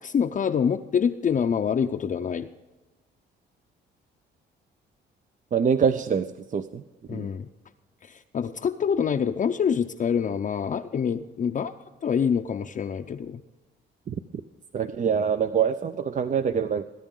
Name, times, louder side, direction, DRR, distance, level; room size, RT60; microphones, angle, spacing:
voice 1, 0.0-2.5 7.1-7.5 8.0-11.7 12.0-13.4, left 7 dB, 40° left, 4 dB, 0.6 m, -26 dB
voice 2, 5.5-6.8 7.1-7.3 14.1-14.2 14.7-16.8, right 7 dB, 40° right, 11 dB, 0.6 m, -25 dB
21.0 x 10.0 x 3.8 m, 1.2 s
cardioid pair, 90°, 20 cm